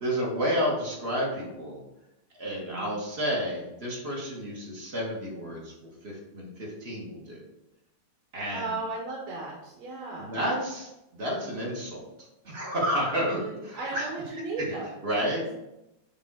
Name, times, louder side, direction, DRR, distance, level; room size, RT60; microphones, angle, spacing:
voice 1, 0.0-1.8 2.4-7.4 8.3-8.7 10.2-12.0 12.4-14.1 14.6-14.7 15.0-15.4, equal, 35° right, -3 dB, 1.0 m, -31 dB
voice 2, 8.5-10.3 13.2-15.0 15.3-15.5, right 3 dB, 70° right, -2 dB, 2.3 m, -36 dB
7.4 x 3.7 x 4.6 m, 0.92 s
omnidirectional pair, 3.3 m